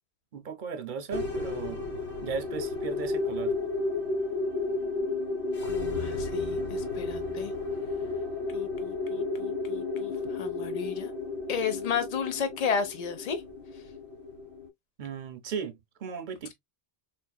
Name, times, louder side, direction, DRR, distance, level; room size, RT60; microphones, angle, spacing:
voice 1, 0.3-1.8 2.2-3.6 15.0-16.5, right 6 dB, 55° right, 0.7 m, -36 dB
sound 1, 1.1-14.7, left 3 dB, 80° left, 1.3 m, -32 dB
voice 2, 5.7-7.5 8.5-11.1 11.5-13.4, left 6 dB, 45° left, 0.7 m, -33 dB
3.8 x 2.5 x 2.2 m
omnidirectional pair, 1.1 m